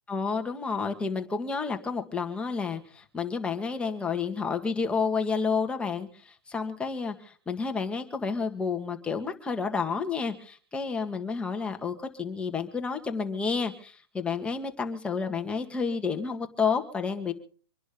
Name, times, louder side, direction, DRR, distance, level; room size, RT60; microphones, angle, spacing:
voice 1, 0.1-17.3, left 5 dB, 10° left, 5 dB, 1.8 m, -30 dB
26.5 x 11.0 x 3.7 m, 0.43 s
hypercardioid pair, 145°, 13 cm